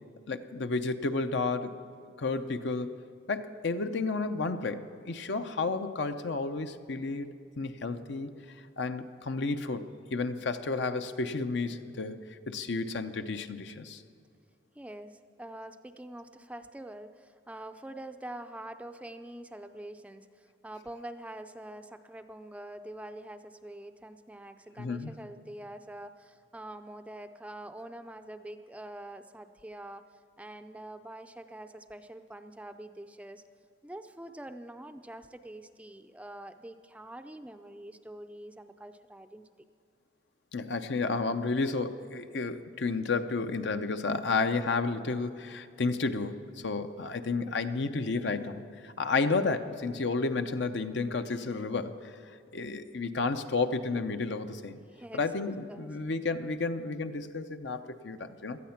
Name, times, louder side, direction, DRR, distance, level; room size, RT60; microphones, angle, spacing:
voice 1, 0.3-1.7 2.2-3.0 3.3-7.3 7.6-8.3 8.8-14.0 24.8-25.1 40.5-46.3 46.6-52.1 52.5-54.8 55.1-58.6, left 3 dB, 65° left, 9 dB, 0.7 m, -31 dB
voice 2, 14.8-30.0 30.4-33.4 33.8-39.4 54.9-55.2 55.7-55.9, right 1 dB, 5° right, 8 dB, 0.4 m, -45 dB
18.0 x 13.0 x 5.8 m, 2.3 s
head